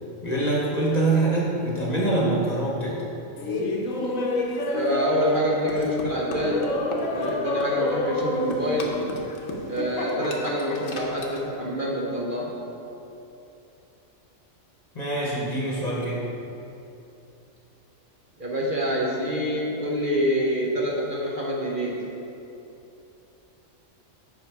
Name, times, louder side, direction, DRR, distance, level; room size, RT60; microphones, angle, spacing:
voice 1, 0.2-3.0 14.9-16.3, right 2 dB, 35° left, -4 dB, 1.1 m, -24 dB
Laughter, 3.4-11.5, left 1 dB, 75° left, 1.3 m, -28 dB
voice 2, 4.6-6.7 7.0-9.0 9.7-12.5 18.4-22.0, equal, 40° right, -4 dB, 1.0 m, -27 dB
7.9 x 5.5 x 4.7 m, 2.9 s
omnidirectional pair, 1.4 m